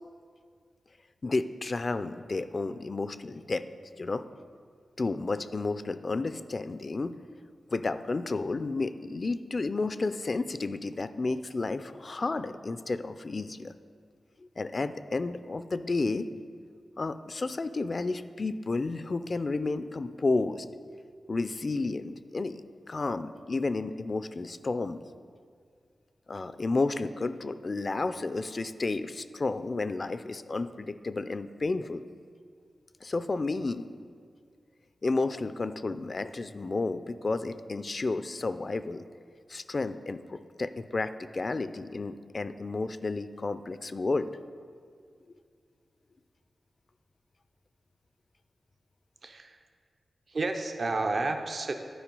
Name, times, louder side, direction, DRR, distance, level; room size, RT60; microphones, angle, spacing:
voice 1, 1.2-3.6 4.0-4.2 5.0-7.1 7.7-13.7 14.6-16.3 17.0-20.7 21.3-25.0 26.3-32.0 33.0-33.9 35.0-39.0 39.5-44.3, left 3 dB, 45° left, 12 dB, 0.4 m, -31 dB
voice 2, 49.2-49.6 50.3-51.7, right 3 dB, 60° right, 5 dB, 0.6 m, -31 dB
10.0 x 4.8 x 5.3 m, 2.1 s
cardioid pair, 55°, 0 cm